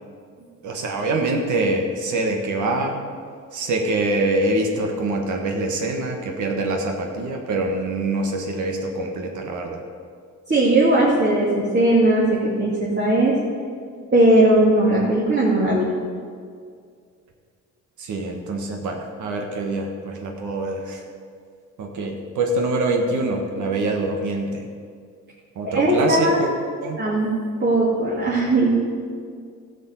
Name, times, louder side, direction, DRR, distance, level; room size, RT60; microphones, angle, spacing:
voice 1, 0.6-3.0 3.5-9.8 18.0-21.0 21.8-24.6 25.5-26.5 26.8-27.0, right 2 dB, 75° right, 2 dB, 1.6 m, -24 dB
voice 2, 10.5-13.3 14.1-15.9 25.6-26.4 27.0-27.3 27.6-28.8, right 1 dB, 35° right, -6 dB, 2.6 m, -18 dB
13.5 x 5.3 x 8.2 m, 2.2 s
cardioid pair, 90°, 30 cm